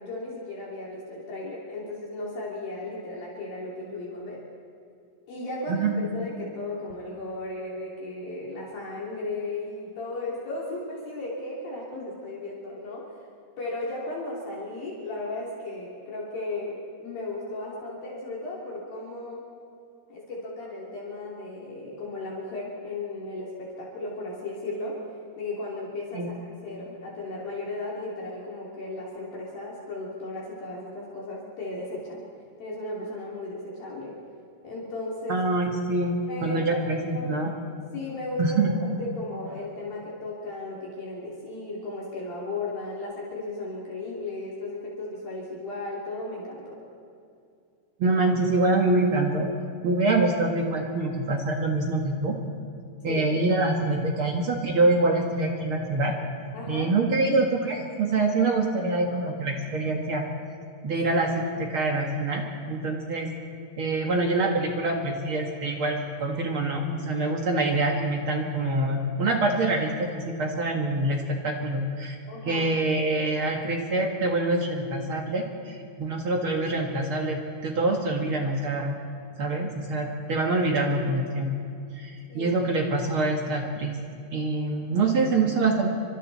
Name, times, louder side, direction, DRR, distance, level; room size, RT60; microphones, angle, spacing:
voice 1, 0.0-4.4 5.3-13.2 13.6-19.4 20.1-25.0 25.4-32.2 32.6-34.1 34.6-35.4 36.3-36.9 37.1-37.4 37.9-46.8 53.1-53.2 56.5-56.9 72.3-72.6 82.3-82.5, left 2 dB, 55° left, -4 dB, 4.7 m, -35 dB
voice 2, 35.3-37.5 38.4-38.7 48.0-49.5 49.8-52.4 53.0-56.1 56.7-60.2 60.8-63.3 63.8-72.2 72.4-79.0 79.4-81.5 81.9-84.0 84.3-86.0, right 2 dB, 65° right, 1 dB, 1.3 m, -25 dB
29.5 x 25.5 x 4.2 m, 2.4 s
omnidirectional pair, 5.0 m